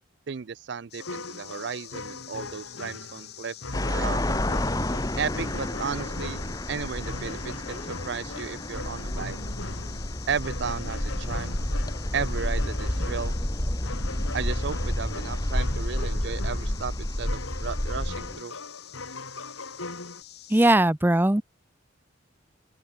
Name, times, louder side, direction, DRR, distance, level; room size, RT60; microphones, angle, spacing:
voice 1, 0.3-3.6 3.9-4.3 5.2-6.4 6.7-9.4 10.3-11.6 12.1-13.4 14.3-18.5, right 6 dB, 60° right, 0.4 m, -34 dB
sound 1, 0.9-20.7, left 13 dB, 55° left, 2.6 m, -46 dB
sound 2, 1.0-20.2, left 2 dB, 85° left, 3.1 m, -40 dB
sound 3, 3.7-18.4, left 1 dB, 20° left, 1.4 m, -30 dB
voice 2, 20.5-21.4, right 1 dB, 10° right, 0.6 m, -19 dB
open air
head